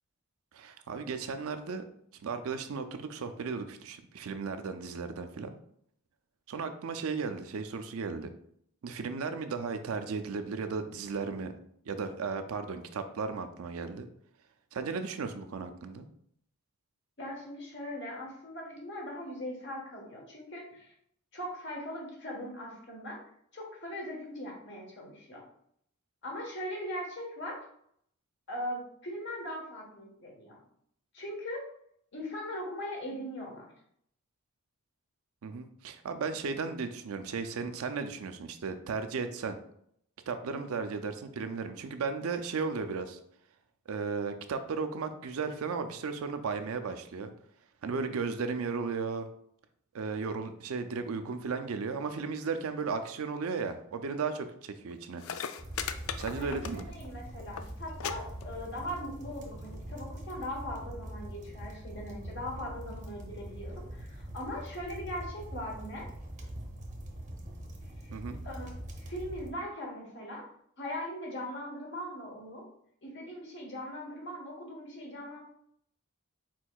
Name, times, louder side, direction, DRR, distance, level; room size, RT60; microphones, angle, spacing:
voice 1, 0.5-1.8 2.2-5.5 6.5-8.3 8.8-11.6 11.9-14.1 14.7-16.1 35.4-39.6 40.3-43.2 43.9-47.3 47.8-49.3 49.9-55.2 56.1-56.9 68.1-68.4, right 5 dB, 75° right, 8 dB, 0.4 m, -35 dB
voice 2, 17.2-20.9 21.3-23.2 23.5-25.4 26.2-27.6 28.5-30.6 31.1-31.6 32.1-33.7 56.4-66.1 68.0-68.1 68.4-70.4 70.8-72.6 73.0-75.4, equal, 50° left, -1 dB, 1.3 m, -40 dB
sound 1, 54.9-55.0 55.2-57.1 57.4-57.7 58.0-58.1 58.4-58.9 59.7-59.8, left 8 dB, 70° left, 0.3 m, -37 dB
sound 2, 55.6-69.5, right 1 dB, 35° right, 0.7 m, -43 dB
4.5 x 4.3 x 2.3 m, 0.69 s
head